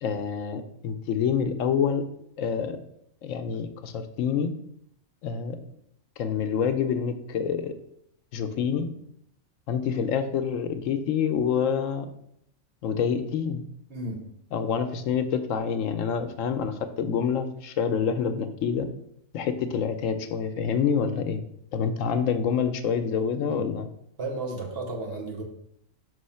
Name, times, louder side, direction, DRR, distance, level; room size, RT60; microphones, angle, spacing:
voice 1, 0.0-2.0 2.4-2.8 3.2-4.5 5.2-5.6 6.2-7.7 8.3-8.9 9.7-12.1 12.8-13.6 14.5-18.9 19.3-21.4 21.7-23.9, left 7 dB, 75° left, 9 dB, 1.0 m, -27 dB
voice 2, 13.9-14.3 23.4-23.6 24.2-25.4, right 2 dB, 50° right, 1 dB, 1.2 m, -33 dB
5.5 x 3.1 x 5.5 m, 0.73 s
omnidirectional pair, 1.4 m